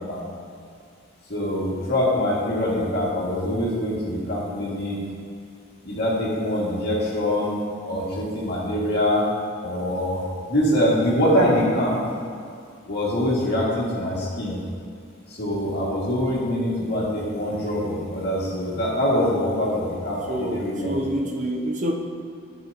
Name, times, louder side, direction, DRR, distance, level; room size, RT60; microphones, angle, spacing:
voice 1, 1.3-5.0 5.9-7.5 7.9-9.2 9.6-10.2 10.5-12.0 12.9-14.6 15.4-21.1, left 1 dB, 55° left, -6 dB, 2.2 m, -24 dB
voice 2, 20.2-21.9, right 1 dB, 40° right, 1 dB, 0.8 m, -27 dB
14.5 x 5.7 x 2.9 m, 2.3 s
head